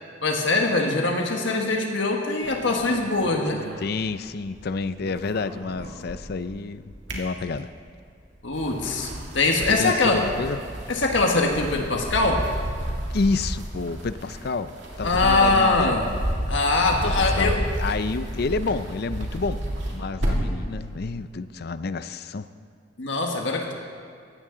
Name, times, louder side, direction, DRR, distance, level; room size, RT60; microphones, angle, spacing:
voice 1, 0.2-3.6 8.4-10.2 10.9-12.4 15.0-16.1 16.5-17.6 17.9-18.0 23.0-23.7, left 3 dB, 75° left, 1 dB, 1.5 m, -22 dB
sound 1, 2.4-4.6 4.9-6.5 6.8-7.9 8.4-20.6, equal, 70° right, 2.6 m, -31 dB
voice 2, 3.8-7.7 9.7-10.6 13.1-16.0 17.0-19.6 19.9-22.5, left 3 dB, 55° left, 13 dB, 0.5 m, -29 dB
18.0 x 14.5 x 3.9 m, 2.1 s
head